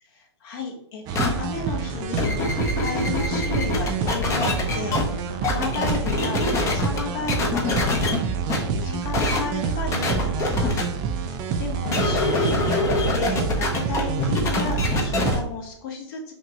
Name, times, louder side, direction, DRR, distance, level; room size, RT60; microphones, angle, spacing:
voice 1, 0.1-10.9 11.2-16.3, left 4 dB, 45° left, 1 dB, 1.0 m, -33 dB
sound 1, 1.1-1.3 2.0-5.0 5.4-7.0 7.3-8.2 8.5-8.6 9.1-9.4 9.9-10.8 11.8-15.3, left 3 dB, 20° left, 0.7 m, -24 dB
sound 2, 1.1-15.4, right 6 dB, 30° right, 0.4 m, -27 dB
sound 3, 4.4-8.7, right 3 dB, 65° left, 1.5 m, -42 dB
5.7 x 2.2 x 2.8 m, 0.66 s
hypercardioid pair, 125°, 15 cm